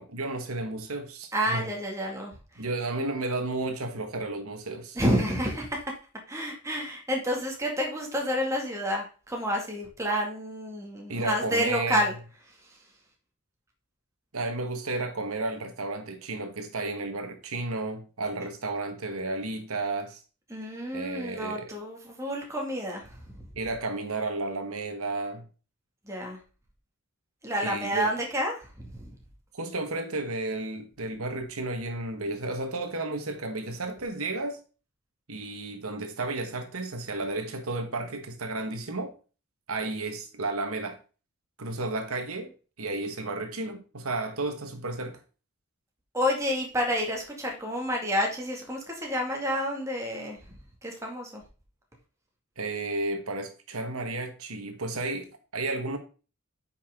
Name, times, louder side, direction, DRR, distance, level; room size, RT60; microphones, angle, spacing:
voice 1, 0.0-1.7 2.6-5.0 11.1-12.0 14.3-20.2 20.9-21.7 23.6-25.4 27.6-28.1 29.5-34.6 35.3-39.1 39.7-41.0 41.6-42.5 42.8-45.2 52.6-56.0, right 2 dB, 80° right, 1.4 m, -32 dB
voice 2, 1.3-2.7 5.0-5.8 6.3-12.1 20.5-23.4 26.1-26.4 27.4-29.1 46.1-50.4 50.8-51.4, equal, 15° right, 2.1 m, -29 dB
9.0 x 5.9 x 3.7 m
head